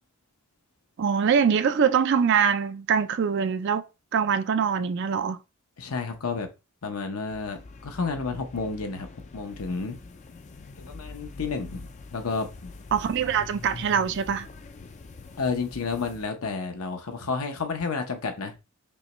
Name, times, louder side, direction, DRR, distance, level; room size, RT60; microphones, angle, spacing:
voice 1, 1.0-3.8 4.1-5.4 12.9-14.5, right 7 dB, 55° right, 0.4 m, -23 dB
voice 2, 5.8-6.5 6.8-7.6 7.8-9.1 9.3-10.0 10.8-12.7 15.4-18.5, left 4 dB, 80° left, 0.8 m, -31 dB
sound 1, 7.3-16.3, left 3 dB, 30° left, 0.4 m, -44 dB
5.4 x 2.2 x 3.0 m
head